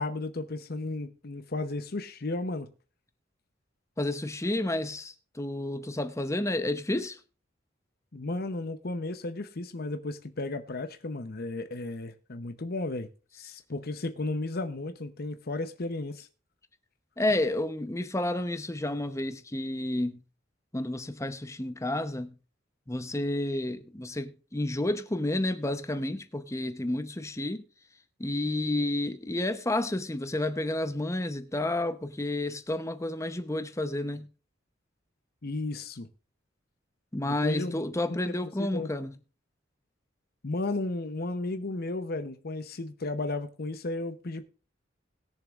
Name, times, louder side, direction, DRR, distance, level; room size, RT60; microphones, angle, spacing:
voice 1, 0.0-2.7 8.1-13.1 13.3-16.3 35.4-36.1 37.2-37.8 38.3-38.9 40.4-44.4, left 2 dB, 50° left, 0.8 m, -34 dB
voice 2, 4.0-7.2 17.2-20.2 20.7-22.3 22.9-27.6 28.2-34.3 37.1-39.1, left 1 dB, 15° left, 0.8 m, -30 dB
21.0 x 7.0 x 2.5 m
head